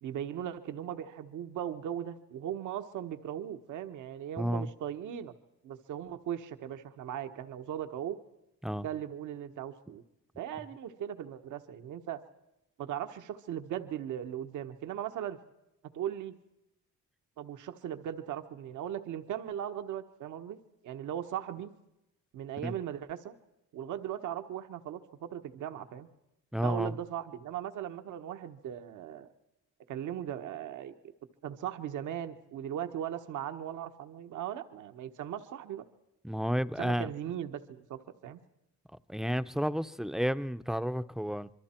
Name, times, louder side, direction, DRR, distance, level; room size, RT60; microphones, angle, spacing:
voice 1, 0.0-5.3 5.6-8.2 8.8-10.0 10.4-12.2 12.8-15.4 15.9-16.4 17.4-20.6 20.8-21.7 22.3-23.3 23.7-26.1 26.6-29.3 29.9-30.9 31.4-35.9 36.8-38.4, right 10 dB, 80° right, 1.3 m, -38 dB
voice 2, 4.4-4.7 8.6-8.9 22.6-22.7 26.5-26.9 36.2-37.1 39.1-41.5, equal, ahead, 0.6 m, -31 dB
26.0 x 23.0 x 4.4 m
cardioid pair, 90°, 30 cm